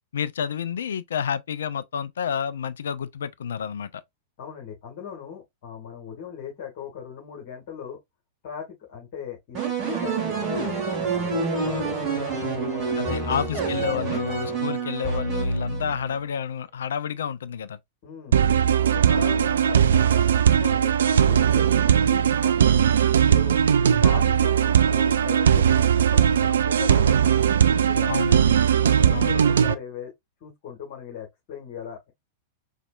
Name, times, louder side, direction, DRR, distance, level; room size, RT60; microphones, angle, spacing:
voice 1, 0.1-4.0 13.0-17.8 28.1-28.6 29.1-29.6, left 8 dB, 65° left, 0.4 m, -30 dB
voice 2, 4.4-8.0 8.4-9.6 9.8-14.2 18.0-18.5 18.9-22.9 23.2-23.6 24.0-28.1 28.8-30.1 30.4-32.1, left 8 dB, 45° left, 1.6 m, -38 dB
sound 1, 9.5-16.2, right 4 dB, 30° right, 1.7 m, -27 dB
sound 2, 18.3-29.7, right 8 dB, 65° right, 0.3 m, -19 dB
4.2 x 3.2 x 2.3 m
figure-of-eight pair, 95°, 0 cm